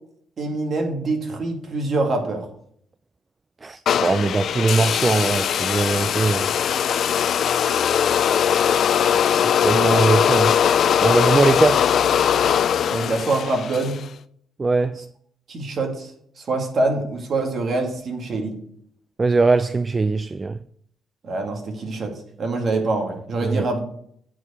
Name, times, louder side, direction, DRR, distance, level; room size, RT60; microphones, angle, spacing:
voice 1, 0.4-2.5 12.4-12.6 12.9-14.0 15.5-16.1 16.4-18.6 21.2-23.8, right 2 dB, 50° right, 2.3 m, -25 dB
voice 2, 3.6-6.5 9.3-10.6 11.0-11.9 14.6-15.1 19.2-20.6 23.4-23.7, right 3 dB, 30° right, 0.3 m, -21 dB
sound 1, 3.9-14.0, left 8 dB, 65° left, 0.4 m, -20 dB
8.7 x 4.6 x 6.8 m
cardioid pair, 90°, 0 cm